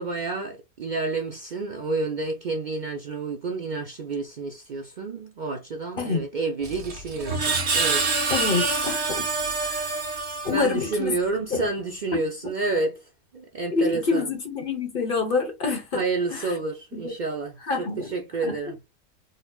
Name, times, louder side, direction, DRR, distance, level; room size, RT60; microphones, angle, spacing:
voice 1, 0.0-8.3 10.5-13.0 13.3-14.3 15.9-18.8, right 3 dB, 85° right, 0.4 m, -29 dB
Screech, 6.6-10.9, right 4 dB, 50° right, 1.3 m, -26 dB
voice 2, 8.3-9.3 9.6-10.0 10.4-11.1 11.5-11.6 13.7-16.0 16.3-16.5 16.9-17.1 17.7-18.1 18.4-18.6, left 4 dB, 40° left, 1.0 m, -27 dB
3.9 x 2.8 x 2.3 m
omnidirectional pair, 1.6 m